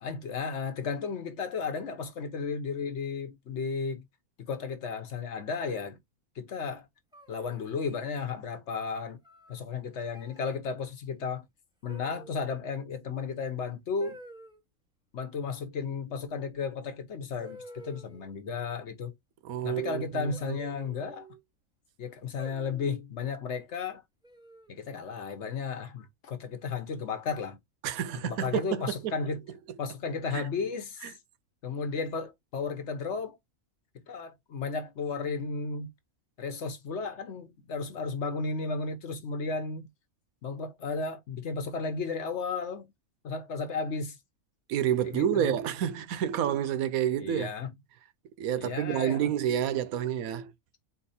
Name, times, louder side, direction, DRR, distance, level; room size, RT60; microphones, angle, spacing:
voice 1, 0.0-4.0 4.4-6.0 6.4-6.9 7.3-9.2 9.5-11.4 11.8-14.2 15.1-19.1 19.6-21.3 22.0-24.0 24.7-27.6 28.2-29.4 29.8-31.1 31.6-33.4 34.1-35.9 36.4-39.9 40.4-42.9 43.2-44.2 45.0-45.5 47.2-47.7 48.5-49.3, left 5 dB, 55° left, 1.1 m, -34 dB
sound 1, 7.1-8.0 9.2-9.6 10.1-10.5 11.9-12.5 14.0-14.6 16.5-16.6 17.4-18.4 20.3-21.4 22.4-23.0 24.2-24.8, right 1 dB, 5° right, 0.6 m, -50 dB
voice 2, 19.4-20.6 27.8-29.1 30.3-30.5 31.0-31.1 44.7-47.5 48.4-50.5, right 10 dB, 80° right, 1.0 m, -29 dB
4.2 x 2.9 x 4.1 m
omnidirectional pair, 1.5 m